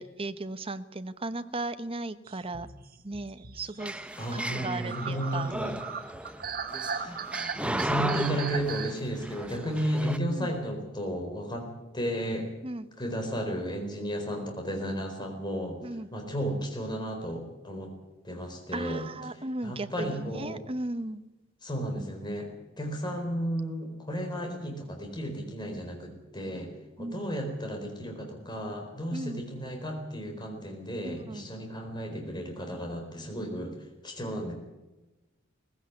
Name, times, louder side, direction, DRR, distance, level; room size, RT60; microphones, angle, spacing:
voice 1, 0.0-2.7 3.0-3.9 4.3-5.5 10.3-10.5 12.6-12.9 15.8-16.1 18.7-21.2 27.0-27.3 29.1-29.4 31.0-31.5, right 2 dB, 30° right, 11 dB, 1.0 m, -36 dB
sound 1, 2.3-10.0, right 6 dB, 50° right, 1.5 m, -38 dB
sound 2, 3.8-10.2, right 1 dB, 5° right, 0.7 m, -35 dB
voice 2, 4.2-5.7 6.8-7.2 7.6-11.7 11.9-12.5 13.0-15.8 16.1-17.9 18.2-19.1 19.6-20.6 21.6-22.5 22.8-26.7 27.0-33.8 34.0-34.5, equal, 20° left, 2 dB, 4.4 m, -33 dB
19.5 x 15.5 x 9.7 m, 1.1 s
head